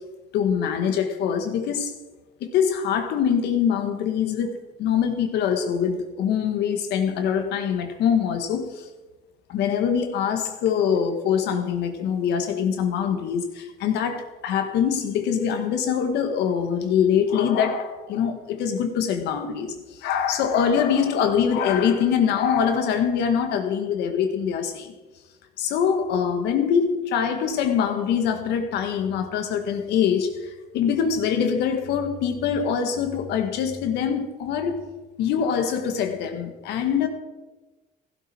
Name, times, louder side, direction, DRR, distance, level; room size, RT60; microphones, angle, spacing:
voice 1, 0.3-1.9 2.4-8.9 9.5-19.7 20.0-24.9 25.6-34.9 35.2-37.1, left 7 dB, 80° left, 1.9 m, -24 dB
15.5 x 12.0 x 4.6 m
cardioid pair, 110°, 17 cm